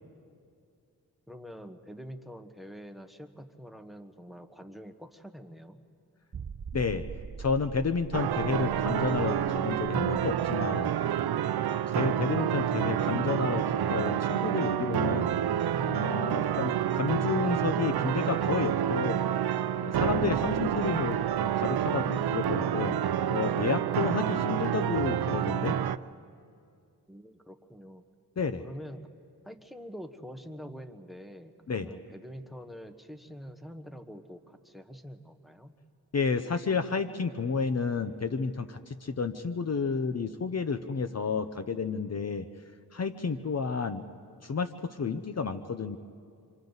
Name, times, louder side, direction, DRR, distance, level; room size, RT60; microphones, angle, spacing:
voice 1, 1.3-5.8 27.1-28.0 28.6-29.1 29.4-35.8, equal, ahead, 8 dB, 1.2 m, -45 dB
sound 1, 6.3-11.8 12.1-12.2 12.7-12.8, right 6 dB, 35° right, 0.6 m, -44 dB
voice 2, 6.7-7.0 7.4-10.9 11.7-15.3 15.8-19.2 19.8-23.0 23.3-25.8 28.4-28.6 31.7-31.9 36.1-42.5 42.9-44.0 44.4-46.0, left 5 dB, 40° left, 8 dB, 0.8 m, -31 dB
sound 2, 8.1-26.0, right 10 dB, 80° right, 0.6 m, -28 dB
28.0 x 25.0 x 4.0 m, 2.3 s
cardioid pair, 75°, 38 cm